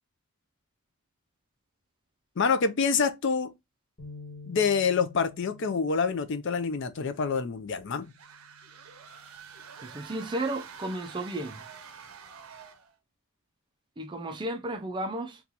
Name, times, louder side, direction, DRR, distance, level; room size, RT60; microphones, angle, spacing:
voice 1, 2.4-3.5 4.5-8.1, left 5 dB, 55° left, 0.4 m, -27 dB
sound 1, 4.0-10.2, left 3 dB, 30° left, 1.2 m, -51 dB
sound 2, 8.0-13.0, right 7 dB, 75° right, 0.6 m, -47 dB
voice 2, 9.8-11.6 14.0-15.4, right 1 dB, 20° right, 0.4 m, -33 dB
2.8 x 2.3 x 3.8 m
head